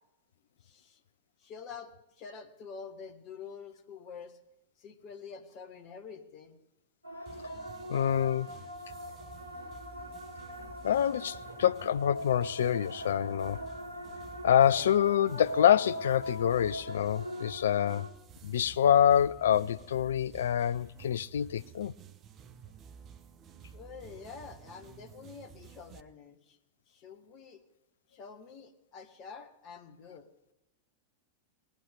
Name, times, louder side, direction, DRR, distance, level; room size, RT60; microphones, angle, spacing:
voice 1, 0.6-1.0 1.4-4.4 4.8-6.6 23.7-26.6 26.9-27.6 28.1-30.3, left 6 dB, 35° left, 1.5 m, -47 dB
sound 1, 7.0-18.1, equal, 90° left, 1.9 m, -42 dB
sound 2, 7.3-26.0, right 7 dB, 30° right, 0.7 m, -53 dB
voice 2, 7.9-8.5 10.8-13.6 14.4-18.1 18.4-21.9, left 9 dB, 65° left, 0.3 m, -26 dB
19.5 x 9.2 x 3.5 m
figure-of-eight pair, 90°, 0 cm